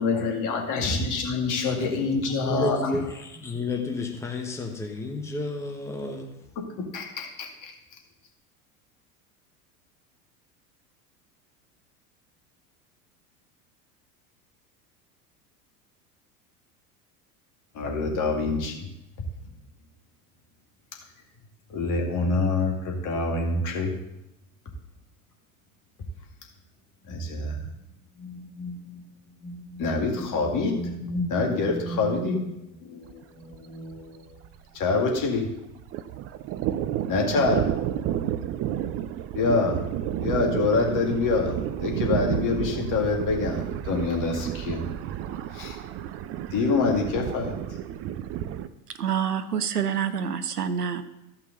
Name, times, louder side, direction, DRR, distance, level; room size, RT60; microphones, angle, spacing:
voice 1, 0.0-2.8 6.8-7.7 17.7-18.9 21.7-23.9 27.1-27.6 28.2-29.0 29.4-34.3 34.7-35.5 37.1-37.6 39.3-41.5 41.8-44.8 45.5-45.8 46.5-47.6, left 3 dB, 40° left, 2 dB, 2.2 m, -26 dB
voice 2, 2.5-6.5, left 2 dB, 5° left, 2 dB, 1.1 m, -31 dB
Thunder, 33.1-33.2 33.5-33.6 33.9-35.4 35.7-48.7, right 11 dB, 30° right, 0.4 m, -31 dB
voice 3, 49.0-51.0, right 8 dB, 90° right, 12 dB, 0.7 m, -27 dB
13.5 x 5.7 x 3.9 m, 0.88 s
hypercardioid pair, 80°, 45 cm